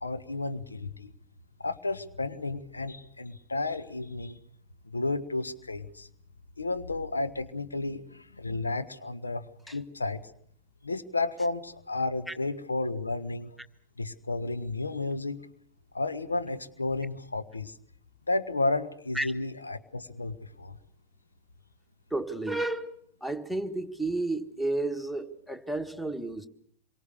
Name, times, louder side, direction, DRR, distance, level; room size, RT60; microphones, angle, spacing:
voice 1, 0.0-1.1 1.6-4.4 4.8-6.1 6.6-10.3 10.8-13.6 14.0-15.4 15.9-17.8 18.3-20.8, left 2 dB, 80° left, 1.2 m, -32 dB
voice 2, 22.1-22.9 23.2-26.5, right 2 dB, ahead, 1.6 m, -31 dB
27.5 x 23.5 x 6.6 m
figure-of-eight pair, 90°, 0 cm